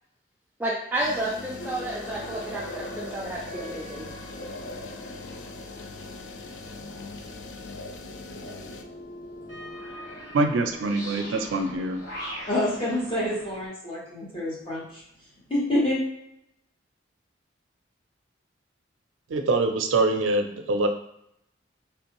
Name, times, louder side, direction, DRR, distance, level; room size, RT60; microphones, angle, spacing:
voice 1, 0.6-4.1, right 1 dB, 10° right, -6 dB, 0.3 m, -31 dB
sound 1, 1.0-8.8, left 3 dB, 60° left, 0.4 m, -40 dB
sound 2, 1.6-13.7, equal, 80° left, 1.2 m, -42 dB
voice 2, 10.3-12.0 19.3-20.9, right 2 dB, 90° right, 5 dB, 0.4 m, -24 dB
voice 3, 12.5-15.0 15.5-16.0, left 1 dB, 25° left, -7 dB, 1.1 m, -27 dB
3.3 x 2.6 x 2.9 m, 0.76 s
head